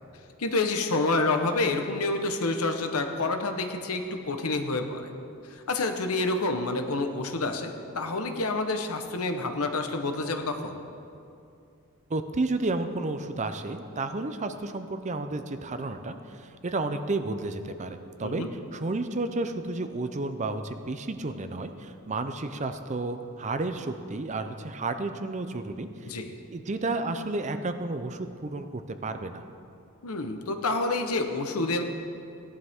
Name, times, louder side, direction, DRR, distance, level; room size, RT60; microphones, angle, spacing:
voice 1, 0.4-5.1 5.5-10.8 18.2-18.5 26.1-26.3 30.0-31.8, left 2 dB, 75° left, 6 dB, 1.0 m, -28 dB
voice 2, 12.1-26.1 26.5-29.4, right 2 dB, 30° right, 8 dB, 0.6 m, -32 dB
17.5 x 11.0 x 3.6 m, 2.5 s
head